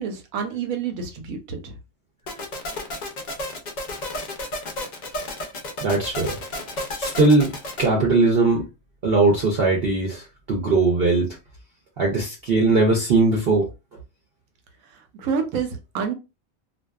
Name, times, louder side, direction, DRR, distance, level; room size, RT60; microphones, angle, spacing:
voice 1, 0.0-1.7 15.1-16.1, right 6 dB, 85° right, 1.1 m, -28 dB
sound 1, 2.3-7.8, left 1 dB, 55° left, 0.5 m, -32 dB
voice 2, 5.8-6.4 7.0-8.7 9.0-11.4 12.0-13.7, right 3 dB, 55° right, 0.7 m, -20 dB
2.5 x 2.3 x 2.2 m
omnidirectional pair, 1.4 m